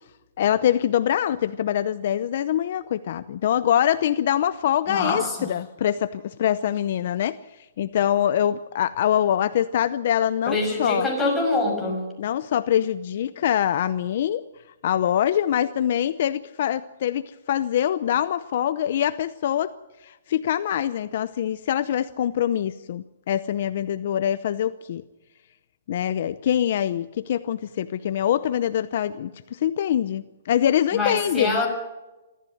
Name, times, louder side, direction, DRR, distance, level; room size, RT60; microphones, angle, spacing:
voice 1, 0.4-7.4 7.8-11.1 12.2-14.4 14.8-19.7 20.0-25.0 25.9-31.6, left 10 dB, 50° left, 13 dB, 0.7 m, -24 dB
voice 2, 4.9-5.5 10.5-12.1 30.9-31.7, left 2 dB, 5° left, -3 dB, 6.1 m, -25 dB
26.0 x 14.0 x 7.8 m, 1.1 s
hypercardioid pair, 165°, 0 cm